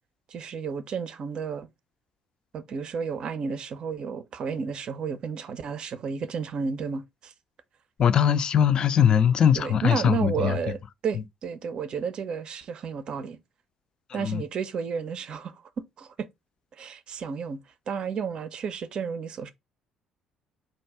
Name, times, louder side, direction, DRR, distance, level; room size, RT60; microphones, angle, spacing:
voice 1, 0.3-1.7 2.5-7.3 9.5-13.4 14.1-15.6 16.0-16.3 16.8-17.6 17.9-19.5, right 6 dB, 45° right, 0.5 m, -32 dB
voice 2, 8.0-10.5 14.2-14.4, left 8 dB, 40° left, 0.4 m, -21 dB
4.5 x 2.6 x 4.5 m
figure-of-eight pair, 50°, 2 cm